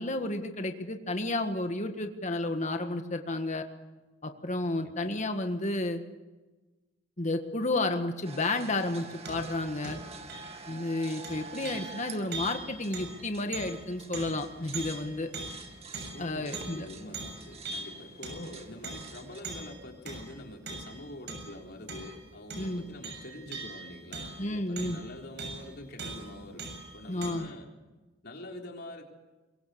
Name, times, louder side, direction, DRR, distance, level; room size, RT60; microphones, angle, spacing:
voice 1, 0.0-3.7 4.2-6.0 7.2-10.0 10.7-15.3 16.2-16.9 18.4-18.5 22.6-22.8 24.4-25.0 27.1-27.5, left 2 dB, 35° left, 6 dB, 1.7 m, -31 dB
sound 1, 8.2-19.4, right 4 dB, 30° right, 2.2 m, -48 dB
sound 2, 9.3-9.6 9.8-10.7 11.2-16.9 17.1-18.6 18.8-21.6 21.9-22.2 22.5-25.1 25.4-25.7 26.0-27.3, right 3 dB, 55° right, 7.0 m, -41 dB
voice 2, 16.1-27.7 28.2-29.0, left 1 dB, 55° left, 1 dB, 4.0 m, -45 dB
23.5 x 23.0 x 7.0 m, 1.2 s
head